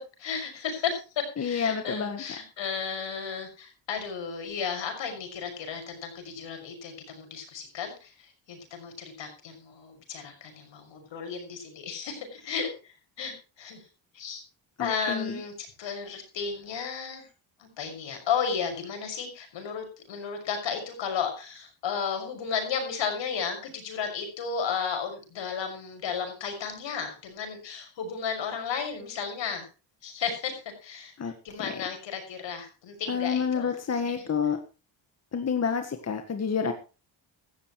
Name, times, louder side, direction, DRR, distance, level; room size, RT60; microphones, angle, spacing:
voice 1, 0.2-1.0 1.4-13.8 14.1-14.4 14.8-17.3 17.6-29.7 30.0-31.1 31.4-33.7 34.2-34.3, left 6 dB, 70° left, 6 dB, 6.2 m, -34 dB
voice 2, 1.4-2.2 14.8-15.4 31.2-31.3 31.6-31.8 33.1-34.6 35.3-36.7, left 6 dB, 35° left, 6 dB, 1.7 m, -29 dB
16.0 x 14.0 x 3.2 m, 0.33 s
cardioid pair, 120°, 46 cm